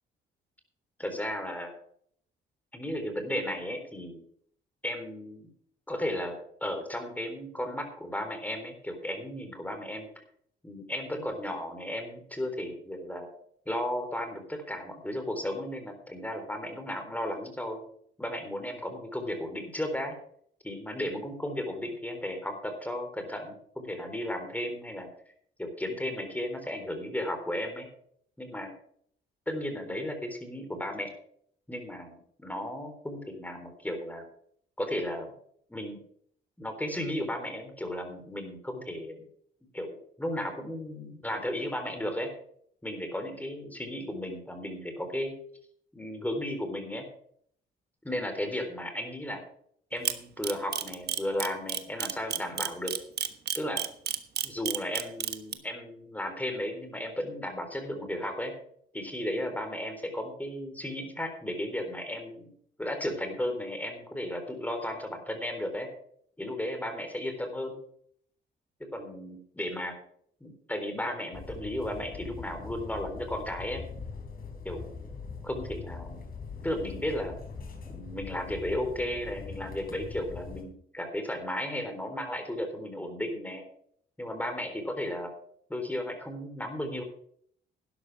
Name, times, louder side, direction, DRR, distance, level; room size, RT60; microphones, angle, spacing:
voice 1, 1.0-1.7 2.7-4.2 4.8-5.5 5.9-10.2 10.6-13.3 13.7-17.9 18.2-20.2 20.6-25.1 25.6-27.9 28.4-28.7 29.5-31.1 31.7-34.3 34.8-35.3 35.7-36.0 36.6-39.2 39.7-42.3 42.8-45.3 45.9-47.0 48.0-49.4 49.9-52.9 53.5-53.8 54.4-58.5 58.9-62.5 62.8-65.9 66.4-67.8 68.9-69.9 70.4-73.8 74.6-74.9 75.4-76.2 76.6-77.4 77.9-83.6 84.2-85.3 85.7-87.0, left 1 dB, 10° left, 6 dB, 3.9 m, -34 dB
Camera, 50.1-55.5, right 9 dB, 55° right, 1.2 m, -30 dB
sound 1, 71.3-80.6, left 5 dB, 50° left, 3.6 m, -42 dB
12.0 x 11.0 x 4.8 m, 0.64 s
cardioid pair, 90°, 20 cm